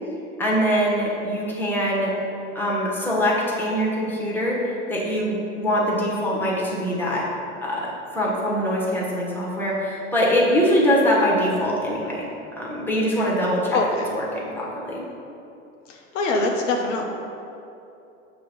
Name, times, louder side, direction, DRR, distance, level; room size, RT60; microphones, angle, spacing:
voice 1, 0.4-2.1 2.5-7.3 7.6-12.3 12.5-13.8 14.1-15.0, equal, 5° left, -5 dB, 1.5 m, -23 dB
voice 2, 13.7-14.1 15.9-17.1, left 2 dB, 70° left, 1 dB, 0.9 m, -23 dB
6.7 x 3.1 x 5.3 m, 2.7 s
hypercardioid pair, 95°, 37 cm